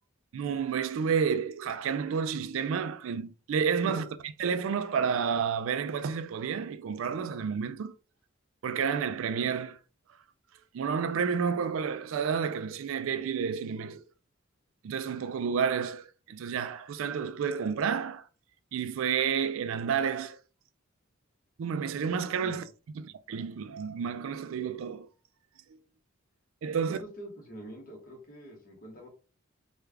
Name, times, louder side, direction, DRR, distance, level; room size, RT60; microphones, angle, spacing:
voice 1, 0.3-4.1 4.4-7.9 8.6-9.8 10.7-14.0 14.8-18.3 18.7-20.4 21.6-22.6 22.9-25.1 26.6-27.0, right 6 dB, 70° right, 0.3 m, -30 dB
voice 2, 26.7-29.1, right 1 dB, 40° left, 1.2 m, -45 dB
3.2 x 2.3 x 3.4 m
head